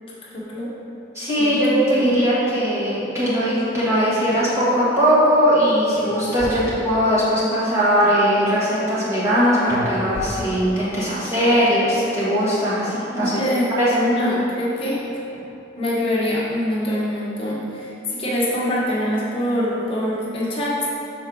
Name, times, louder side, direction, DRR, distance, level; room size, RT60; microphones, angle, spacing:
voice 1, 0.3-0.7 1.4-2.0 13.2-13.6 13.9-15.2 15.8-20.9, left 1 dB, 30° left, -6 dB, 1.1 m, -24 dB
voice 2, 1.1-13.4 13.8-13.9, equal, 15° right, -10 dB, 1.3 m, -19 dB
sound 1, 5.9-6.5 9.7-10.9, left 1 dB, 10° left, 1.5 m, -33 dB
6.3 x 4.5 x 3.8 m, 2.8 s
head